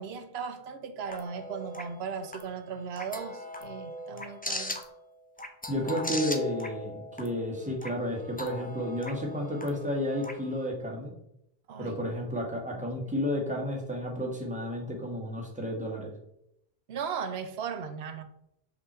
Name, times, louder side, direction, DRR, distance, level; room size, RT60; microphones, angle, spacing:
voice 1, 0.0-4.8 11.7-12.0 12.7-13.2 16.9-18.2, right 6 dB, 85° right, 0.9 m, -37 dB
sound 1, 1.1-10.6, left 1 dB, 10° left, 0.5 m, -40 dB
voice 2, 5.7-11.1 11.8-16.1, left 1 dB, 5° right, 1.4 m, -32 dB
6.0 x 5.3 x 4.3 m
omnidirectional pair, 1.0 m